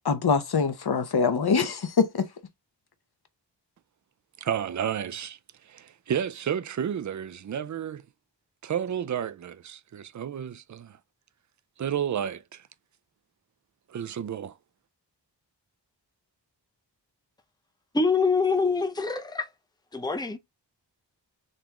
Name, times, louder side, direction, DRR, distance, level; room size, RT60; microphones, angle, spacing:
voice 1, 0.0-2.3, left 5 dB, 60° left, 0.9 m, -24 dB
voice 2, 4.4-5.4 5.7-8.0 8.6-10.9 11.8-12.6 13.9-14.5, right 9 dB, 45° right, 0.4 m, -31 dB
voice 3, 17.9-19.5 19.9-20.4, left 4 dB, 10° left, 0.7 m, -25 dB
4.0 x 3.5 x 2.9 m
wide cardioid pair, 55°, 44 cm